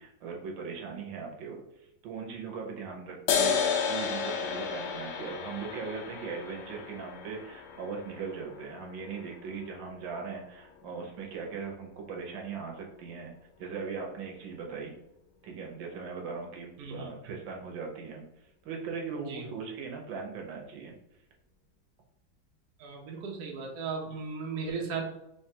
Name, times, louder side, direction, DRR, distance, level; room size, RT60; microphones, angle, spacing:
voice 1, 0.0-1.6 2.0-13.3 13.6-14.9 15.4-18.2 18.6-20.9, right 5 dB, 75° right, 1 dB, 1.5 m, -39 dB
sound 1, 3.3-10.3, left 6 dB, 80° left, 1.3 m, -33 dB
voice 2, 16.8-17.1 19.3-19.4 22.8-25.1, right 5 dB, 60° right, 0 dB, 1.0 m, -36 dB
3.5 x 3.4 x 2.8 m, 0.84 s
omnidirectional pair, 2.1 m